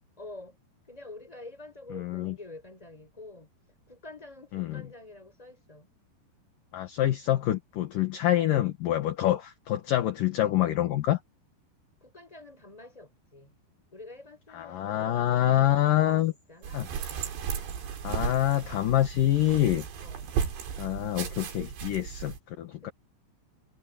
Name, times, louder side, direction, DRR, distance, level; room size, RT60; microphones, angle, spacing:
voice 1, 0.2-0.6 0.9-3.5 3.9-5.9 12.0-13.6 13.9-17.0 20.0-20.3 22.8-22.9, left 2 dB, 10° left, 5.6 m, -47 dB
voice 2, 1.9-2.3 4.5-4.7 6.7-11.2 14.5-16.3 16.7-16.9 18.0-19.9 20.8-22.9, left 13 dB, 65° left, 2.6 m, -26 dB
sound 1, 16.6-22.4, right 7 dB, 75° right, 5.3 m, -35 dB
omnidirectional pair, 5.0 m